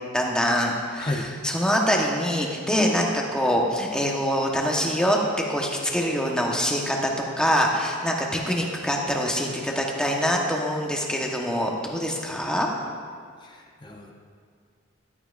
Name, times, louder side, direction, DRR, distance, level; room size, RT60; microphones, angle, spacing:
voice 1, 0.1-1.1 1.4-5.2 5.5-12.7, equal, 5° left, -1 dB, 1.1 m, -24 dB
voice 2, 1.0-1.3 13.4-14.1, left 2 dB, 20° left, 1 dB, 0.7 m, -32 dB
14.5 x 12.0 x 2.5 m, 2.1 s
head